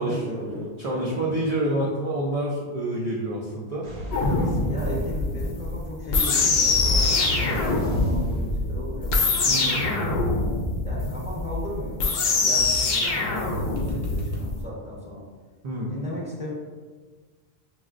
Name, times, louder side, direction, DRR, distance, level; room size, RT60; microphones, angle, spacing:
voice 1, 0.0-1.3 4.3-10.0 10.8-15.2 15.9-16.5, equal, 5° right, -6 dB, 0.9 m, -36 dB
voice 2, 0.8-3.9 4.5-4.6 9.4-9.8 15.6-15.9, right 1 dB, 45° right, -4 dB, 0.5 m, -27 dB
Real explosions Real gunshots, 3.8-10.2 13.8-14.4, equal, 80° right, 1.0 m, -38 dB
sound 1, 4.1-14.6, left 3 dB, 70° left, 0.8 m, -24 dB
6.0 x 2.1 x 2.4 m, 1.4 s
omnidirectional pair, 1.1 m